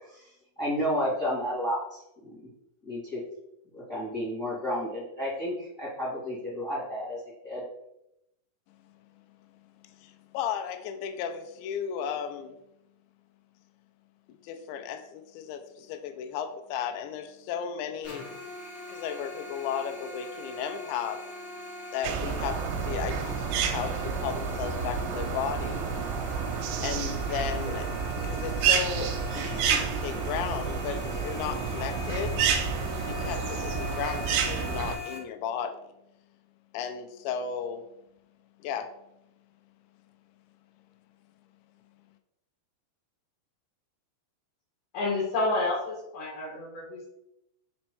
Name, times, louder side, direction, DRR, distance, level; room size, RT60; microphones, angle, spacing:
voice 1, 0.6-2.4 2.8-3.2 3.7-7.6, equal, 25° left, -7 dB, 2.1 m, -31 dB
voice 2, 9.8-12.6 14.4-18.2 18.9-21.2 21.9-25.8 26.8-27.9 28.2-32.4 33.1-35.8 36.7-37.8 38.6-38.9, left 8 dB, 85° left, 7 dB, 2.9 m, -35 dB
sound 1, 18.0-35.2, left 2 dB, 45° left, 2.4 m, -41 dB
sound 2, 22.0-35.0, right 6 dB, 90° right, 2.9 m, -30 dB
voice 3, 44.9-47.1, left 2 dB, 60° left, -5 dB, 2.8 m, -29 dB
6.3 x 4.3 x 4.5 m, 0.82 s
omnidirectional pair, 5.1 m